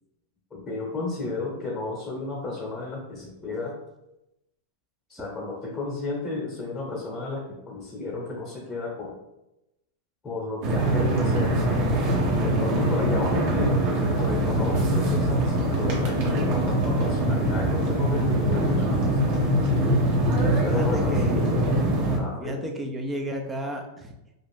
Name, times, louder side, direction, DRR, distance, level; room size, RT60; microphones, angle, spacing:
voice 1, 0.5-3.7 5.1-9.1 10.2-11.6 12.4-19.2 20.6-21.5 22.2-22.6, left 3 dB, 15° left, -3 dB, 0.9 m, -33 dB
sound 1, 10.6-22.2, right 1 dB, 55° right, 0.9 m, -23 dB
voice 2, 20.4-21.5 22.4-24.1, equal, 15° right, 3 dB, 0.5 m, -33 dB
2.5 x 2.4 x 3.5 m, 0.92 s
hypercardioid pair, 125°, 0 cm